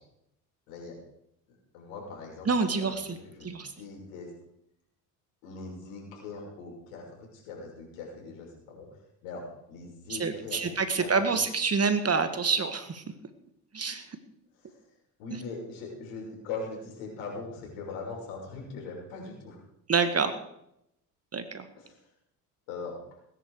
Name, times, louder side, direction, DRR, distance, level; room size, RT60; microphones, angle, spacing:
voice 1, 1.7-2.5 2.8-4.3 5.4-8.9 9.2-9.4 9.7-11.4 14.6-14.8 15.2-19.6 21.8-22.0 22.7-22.9, left 4 dB, 80° left, -1 dB, 6.3 m, -41 dB
voice 2, 2.5-3.2 3.4-3.7 10.1-13.0 13.7-14.1 15.3-15.4 19.9-20.3 21.3-21.7, right 5 dB, 30° right, 9 dB, 2.0 m, -27 dB
19.5 x 10.5 x 5.0 m, 0.77 s
hypercardioid pair, 70°, 46 cm